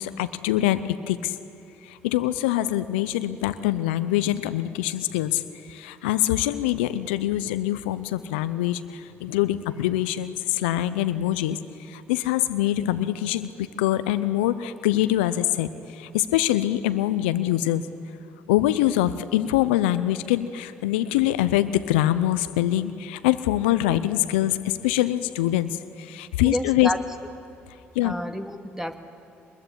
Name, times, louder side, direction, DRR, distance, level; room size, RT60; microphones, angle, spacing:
voice 1, 0.0-1.4 1.8-17.8 18.5-26.9 27.9-28.1, left 14 dB, 85° left, 13 dB, 0.7 m, -24 dB
voice 2, 26.4-27.0 28.0-28.9, equal, 5° right, 7 dB, 2.4 m, -29 dB
24.0 x 21.5 x 9.9 m, 2.9 s
hypercardioid pair, 50°, 6 cm